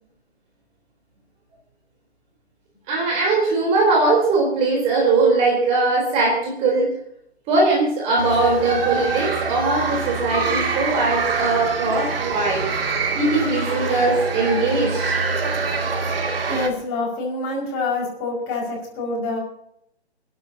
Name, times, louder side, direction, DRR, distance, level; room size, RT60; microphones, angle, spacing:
voice 1, 2.9-6.9 7.5-12.7 13.1-15.2, right 3 dB, 20° right, -2 dB, 3.8 m, -20 dB
sound 1, 8.2-16.7, right 4 dB, 60° right, 2.6 m, -25 dB
voice 2, 16.5-19.4, left 3 dB, 25° left, -2 dB, 5.5 m, -26 dB
28.0 x 11.5 x 2.9 m, 0.73 s
figure-of-eight pair, 145°, 33 cm